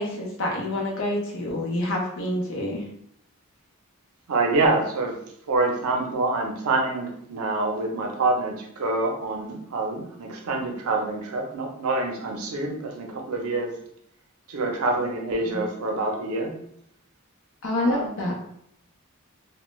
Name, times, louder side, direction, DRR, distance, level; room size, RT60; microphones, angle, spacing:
voice 1, 0.0-2.8 15.5-15.6 17.6-18.3, left 1 dB, 60° left, -1 dB, 0.6 m, -27 dB
voice 2, 4.3-5.2 5.5-13.8 14.5-16.6 17.8-18.1, right 2 dB, 75° right, 1 dB, 0.5 m, -26 dB
2.2 x 2.0 x 3.0 m, 0.71 s
head